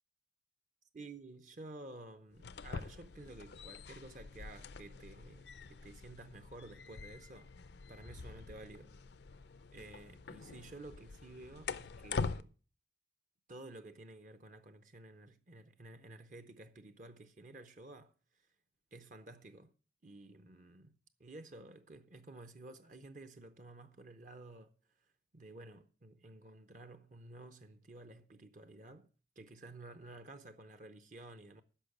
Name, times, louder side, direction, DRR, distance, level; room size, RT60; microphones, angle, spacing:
voice 1, 0.9-7.5 7.9-8.9 9.7-12.5 13.5-18.5 18.9-19.7 20.0-24.7 25.3-29.1 29.4-31.6, right 2 dB, 45° right, 0.7 m, -52 dB
sound 1, 2.3-12.4, left 4 dB, 60° left, 0.5 m, -45 dB
10.0 x 6.5 x 7.9 m
head